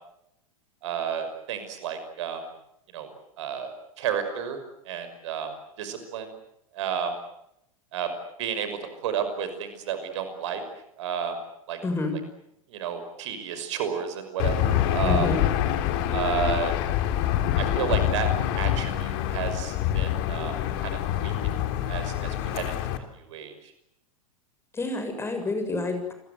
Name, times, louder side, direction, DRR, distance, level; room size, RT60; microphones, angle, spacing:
voice 1, 0.8-2.4 2.9-3.1 3.4-4.6 4.9-5.5 5.8-6.3 6.7-7.1 7.9-8.1 8.4-10.6 11.0-11.4 11.7-11.8 12.7-15.3 16.1-16.8 17.2-18.3 18.5-20.5 20.8-21.3 21.9-22.7 23.2-23.5, right 8 dB, 55° right, 9 dB, 5.8 m, -31 dB
voice 2, 11.8-12.2 15.1-15.4 24.7-26.1, left 2 dB, 15° left, 6 dB, 7.2 m, -28 dB
Aircraft / Engine, 14.4-23.0, left 11 dB, 45° left, 3.3 m, -26 dB
29.5 x 22.5 x 8.1 m, 0.78 s
figure-of-eight pair, 90°, 18 cm